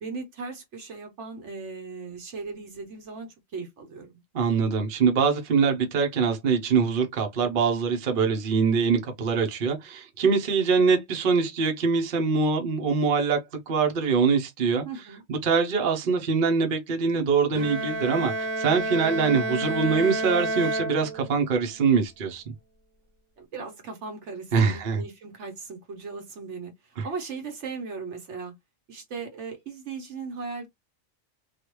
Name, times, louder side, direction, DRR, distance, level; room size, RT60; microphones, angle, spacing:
voice 1, 0.0-4.1 14.8-15.2 19.0-19.2 23.4-28.5 28.9-30.7, right 4 dB, 65° right, 1.1 m, -38 dB
voice 2, 4.3-14.8 15.3-22.4 24.5-25.0 27.0-27.1, right 5 dB, 45° right, 0.9 m, -23 dB
Bowed string instrument, 17.5-21.5, right 2 dB, 90° right, 1.3 m, -29 dB
3.2 x 2.4 x 3.0 m
omnidirectional pair, 1.4 m